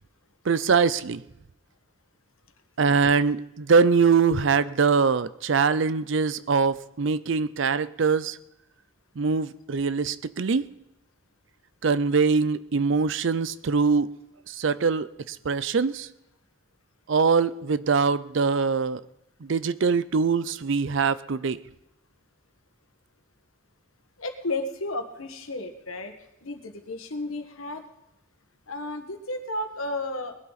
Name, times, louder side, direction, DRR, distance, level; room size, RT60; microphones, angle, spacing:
voice 1, 0.5-1.2 2.8-8.3 9.2-10.7 11.8-14.1 14.5-16.1 17.1-19.0 19.5-21.6, right 5 dB, 60° right, 16 dB, 0.5 m, -23 dB
voice 2, 24.2-26.1 26.4-27.8 28.7-30.3, left 2 dB, 90° left, 6 dB, 1.6 m, -33 dB
20.5 x 12.0 x 4.1 m, 0.90 s
head